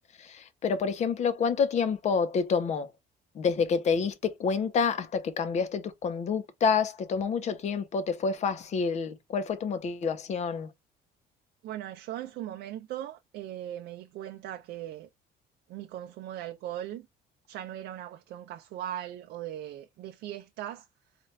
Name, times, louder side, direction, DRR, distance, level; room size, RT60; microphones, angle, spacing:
voice 1, 0.2-2.9 3.3-10.7, left 5 dB, 40° left, 0.7 m, -28 dB
voice 2, 11.6-15.1 15.7-17.1 17.5-20.9, right 12 dB, 70° right, 0.6 m, -39 dB
4.4 x 2.4 x 3.1 m
cardioid pair, 145°, 17 cm